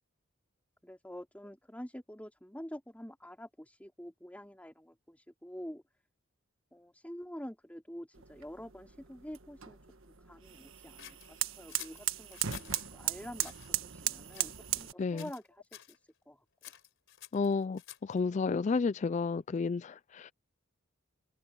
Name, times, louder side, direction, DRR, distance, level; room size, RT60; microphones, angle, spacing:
voice 1, 0.8-5.8 6.7-9.8 10.0-13.5 13.8-16.0 16.3-16.4, equal, 5° left, 3.2 m, -47 dB
sound 1, 8.1-14.9, right 12 dB, 65° right, 1.4 m, -38 dB
sound 2, 11.0-12.9 13.3-13.7 14.3-14.9 15.2-15.5 15.7-16.0 16.6-18.2, left 12 dB, 60° left, 4.2 m, -50 dB
voice 2, 17.3-20.3, left 4 dB, 35° left, 0.3 m, -31 dB
head